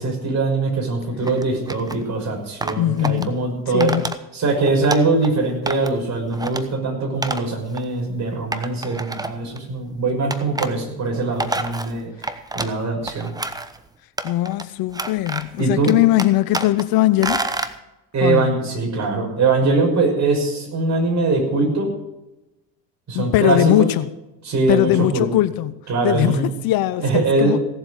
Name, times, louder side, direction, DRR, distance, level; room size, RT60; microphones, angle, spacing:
voice 1, 0.0-3.9 4.3-12.1 12.5-13.3 15.6-15.9 18.1-21.9 23.1-23.9 24.4-25.3 25.9-26.5 27.0-27.6, right 3 dB, 40° right, 5.9 m, -22 dB
sound 1, 1.3-2.0 2.6-3.3 3.8-4.2 4.5-5.3 5.7-6.0 6.3-6.6 7.2-7.4 7.7-7.8 8.5-9.6 10.3-10.7 11.2-12.8 13.1-13.8 14.2-14.6 14.9-15.6 15.9-16.8 17.2-17.7, right 2 dB, 10° right, 1.0 m, -28 dB
voice 2, 2.8-4.1 14.2-17.4 18.2-18.6 23.1-24.1 24.7-27.6, left 15 dB, 55° left, 0.8 m, -20 dB
17.0 x 7.9 x 6.4 m
hypercardioid pair, 75°, 43 cm